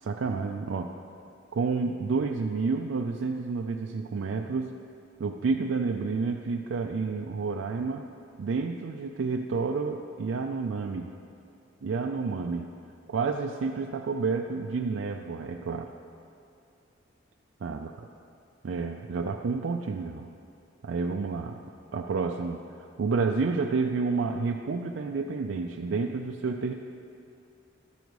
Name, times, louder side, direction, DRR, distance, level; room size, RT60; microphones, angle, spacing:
voice 1, 0.0-1.0 1.5-4.8 5.2-8.1 8.4-11.1 11.8-12.7 13.1-15.9 17.6-17.9 18.6-20.3 20.8-21.6 21.9-26.7, right 4 dB, 65° right, 2 dB, 0.4 m, -30 dB
13.0 x 5.2 x 4.7 m, 2.6 s
head